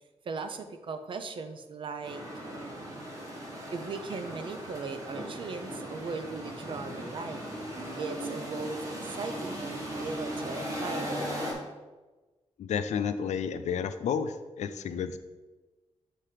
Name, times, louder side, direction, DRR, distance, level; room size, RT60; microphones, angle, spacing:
voice 1, 0.2-3.1 3.7-7.5 8.0-11.2 15.0-15.2, right 4 dB, 45° right, 8 dB, 0.5 m, -39 dB
sound 1, 2.0-11.5, equal, 30° right, 1.2 m, -37 dB
voice 2, 12.6-15.2, left 7 dB, 75° left, 10 dB, 0.4 m, -31 dB
7.4 x 2.9 x 4.9 m, 1.2 s
wide cardioid pair, 170°, 12 cm